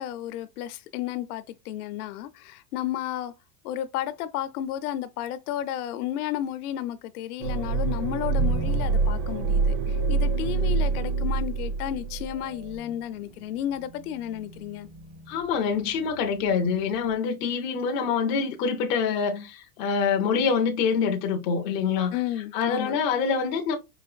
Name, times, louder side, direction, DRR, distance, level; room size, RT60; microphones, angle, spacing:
voice 1, 0.0-3.3 3.6-14.9 22.1-23.0, left 12 dB, 65° left, 0.6 m, -32 dB
sound 1, 7.4-12.4 12.6-12.7, right 4 dB, 80° right, 0.9 m, -25 dB
sound 2, 8.4-17.1, right 3 dB, 40° right, 0.6 m, -41 dB
voice 2, 15.3-22.2 22.5-23.8, left 6 dB, 25° left, 0.3 m, -25 dB
4.9 x 2.5 x 2.3 m
supercardioid pair, 150°, 48 cm